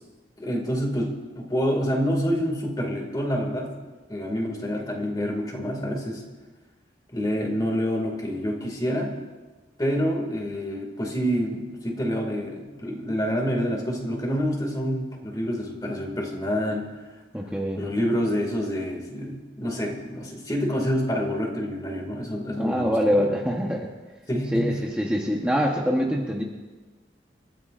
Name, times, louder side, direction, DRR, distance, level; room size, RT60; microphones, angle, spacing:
voice 1, 0.4-3.7 4.1-6.2 7.1-9.1 9.8-16.9 17.7-23.3 24.3-24.7, equal, 20° left, 1 dB, 2.3 m, -27 dB
voice 2, 17.3-17.8 22.6-23.9 24.5-26.4, equal, 5° right, -2 dB, 1.1 m, -24 dB
29.0 x 14.5 x 2.6 m, 1.3 s
head